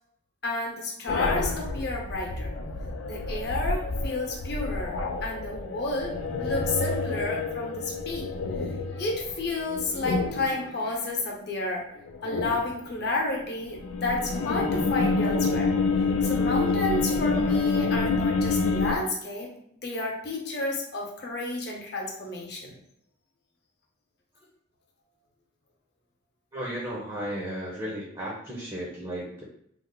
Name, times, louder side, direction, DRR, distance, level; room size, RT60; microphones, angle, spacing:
voice 1, 0.4-2.5 3.0-6.1 6.4-8.3 8.6-11.8 12.2-15.7 16.2-19.5 19.8-22.8, left 2 dB, 55° left, -1 dB, 0.8 m, -31 dB
sound 1, 1.1-10.7 12.1-12.9 13.6-19.0, left 3 dB, 85° left, 0.4 m, -28 dB
voice 2, 26.5-29.4, equal, 20° right, -4 dB, 0.6 m, -34 dB
3.2 x 2.0 x 3.7 m, 0.72 s
head